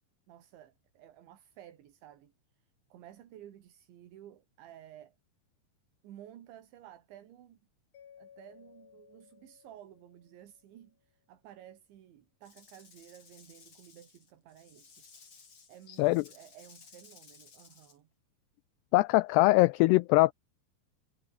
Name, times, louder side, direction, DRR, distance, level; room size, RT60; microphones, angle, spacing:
voice 1, 0.3-2.3 2.9-5.2 6.0-7.6 8.2-15.0 15.7-18.1, right 11 dB, 80° right, 4.6 m, -54 dB
Mallet percussion, 7.9-10.9, left 8 dB, 55° left, 4.3 m, -59 dB
Rattle / Rattle (instrument), 12.4-18.0, left 5 dB, 35° left, 4.1 m, -58 dB
voice 2, 15.9-16.2 18.9-20.3, left 21 dB, 90° left, 2.3 m, -23 dB
omnidirectional pair, 5.3 m